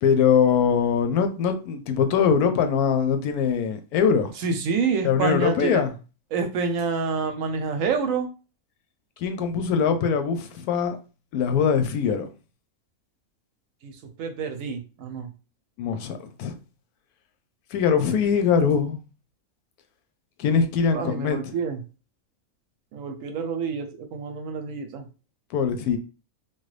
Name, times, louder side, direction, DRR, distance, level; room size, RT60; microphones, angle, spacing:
voice 1, 0.0-4.3 5.0-5.9 9.2-11.0 11.3-12.3 15.8-16.5 17.7-19.0 20.4-21.4 25.5-26.0, left 6 dB, 90° left, 1.1 m, -22 dB
voice 2, 4.4-5.8 6.3-8.3 13.8-15.3 20.9-21.8 22.9-25.1, right 5 dB, 70° right, 0.9 m, -28 dB
3.1 x 2.2 x 3.1 m
omnidirectional pair, 1.5 m